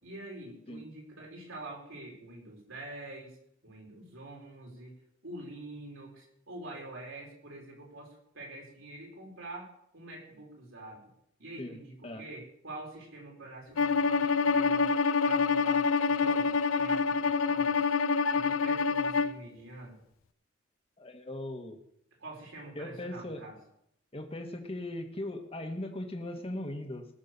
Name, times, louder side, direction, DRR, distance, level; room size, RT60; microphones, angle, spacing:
voice 1, 0.0-3.4 3.6-4.9 5.2-11.0 11.4-14.9 15.2-18.0 18.3-20.0 22.2-23.6, right 2 dB, 75° right, -1 dB, 5.3 m, -46 dB
Bowed string instrument, 13.8-19.4, left 5 dB, 90° left, 0.6 m, -26 dB
voice 2, 21.0-21.8 22.7-23.4 24.1-27.1, left 1 dB, 30° left, 4 dB, 1.5 m, -39 dB
19.5 x 6.7 x 6.9 m, 0.73 s
head